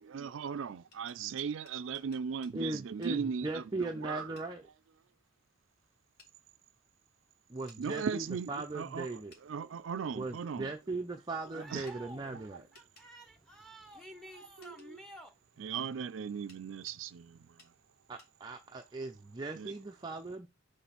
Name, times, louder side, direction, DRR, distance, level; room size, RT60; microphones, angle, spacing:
voice 1, 0.0-4.3 7.8-10.7 11.5-11.9 12.5-12.6 14.3-15.0 15.6-17.6 19.6-19.7, right 6 dB, 75° right, 0.4 m, -38 dB
sound 1, 0.7-2.6 3.0-3.2 4.4-4.5 6.2-6.3 7.7-7.8 9.3-9.5 11.9-12.0 12.7-13.1 14.6-14.9 16.5-17.0 17.6-17.7 18.2-18.3, left 3 dB, 50° left, 1.7 m, -61 dB
voice 2, 2.5-4.7 7.5-9.3 10.1-12.7 18.1-20.5, right 2 dB, 20° right, 0.5 m, -38 dB
voice 3, 11.5-15.3, right 1 dB, 5° left, 1.2 m, -51 dB
6.1 x 3.3 x 5.6 m
head